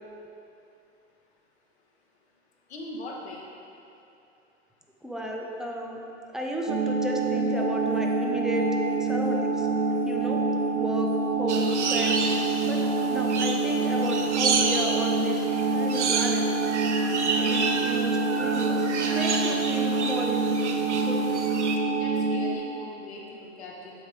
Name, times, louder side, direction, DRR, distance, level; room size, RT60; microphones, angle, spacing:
voice 1, 2.7-3.4 21.9-24.0, left 1 dB, 70° left, -2 dB, 1.2 m, -40 dB
voice 2, 5.0-6.0 6.3-8.7 9.0-10.4 10.7-12.2 12.6-15.5 15.7-16.5 17.4-20.6 21.0-21.4, equal, ahead, -1 dB, 0.5 m, -34 dB
sound 1, 6.7-22.6, right 3 dB, 40° right, 0.8 m, -26 dB
sound 2, 7.2-19.7, left 2 dB, 25° left, 1.4 m, -42 dB
sound 3, 11.5-21.8, right 4 dB, 80° right, 0.6 m, -30 dB
7.9 x 5.0 x 3.4 m, 2.8 s
figure-of-eight pair, 90°, 34 cm